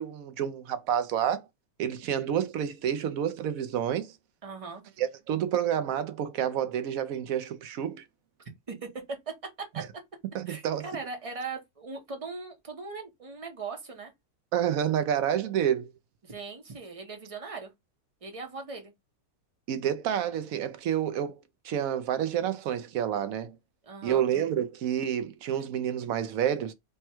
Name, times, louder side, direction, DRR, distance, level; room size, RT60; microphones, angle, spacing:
voice 1, 0.0-1.4 1.8-4.1 5.0-8.0 9.8-9.9 10.3-10.9 14.5-15.9 19.7-21.3 21.6-23.6 24.0-26.7, right 9 dB, 70° right, 1.0 m, -29 dB
voice 2, 4.4-4.8 8.7-9.2 9.6-9.8 10.5-14.1 16.2-17.7 18.2-18.9 23.8-24.3, right 4 dB, 30° right, 0.8 m, -39 dB
3.4 x 2.2 x 4.3 m
omnidirectional pair, 1.6 m